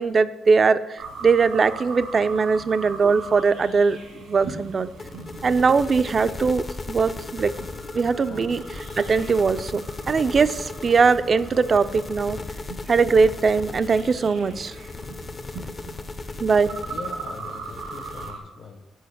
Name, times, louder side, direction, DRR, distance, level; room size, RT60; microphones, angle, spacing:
voice 1, 0.0-4.9 5.4-7.5 7.9-12.4 12.9-14.8 16.4-16.7, right 5 dB, 45° right, 13 dB, 0.4 m, -21 dB
sound 1, 1.0-18.4, right 4 dB, 90° right, 1.5 m, -40 dB
sound 2, 5.0-18.3, left 3 dB, 40° left, 0.6 m, -36 dB
voice 2, 15.4-16.2 16.8-18.9, left 5 dB, 65° left, 6 dB, 1.1 m, -43 dB
6.3 x 5.1 x 6.5 m, 1.1 s
supercardioid pair, 65°, 0 cm